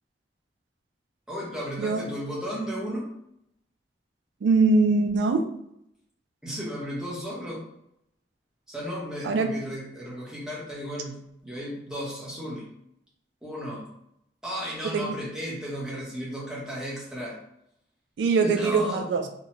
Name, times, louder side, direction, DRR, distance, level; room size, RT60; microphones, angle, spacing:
voice 1, 1.3-3.1 6.4-7.6 8.7-12.7 13.4-13.9 14.4-17.4 18.4-19.3, equal, 5° right, -6 dB, 0.8 m, -34 dB
voice 2, 4.4-5.5 9.2-9.5 14.9-15.1 18.2-19.2, right 3 dB, 85° right, 5 dB, 0.3 m, -22 dB
2.8 x 2.1 x 2.9 m, 0.77 s
head